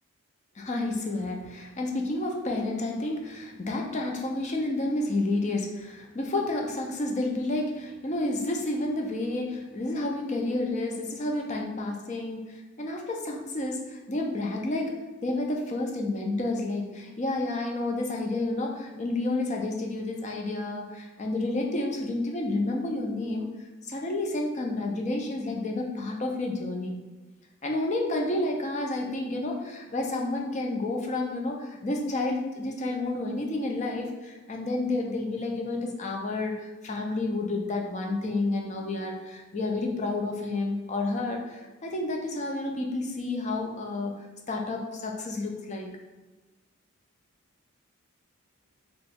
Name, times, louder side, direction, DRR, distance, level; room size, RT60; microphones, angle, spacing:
voice 1, 0.6-14.9 15.2-23.5 23.8-26.9 27.6-44.1 44.5-45.9, left 2 dB, 35° left, 1 dB, 0.5 m, -30 dB
3.3 x 3.0 x 3.5 m, 1.2 s
head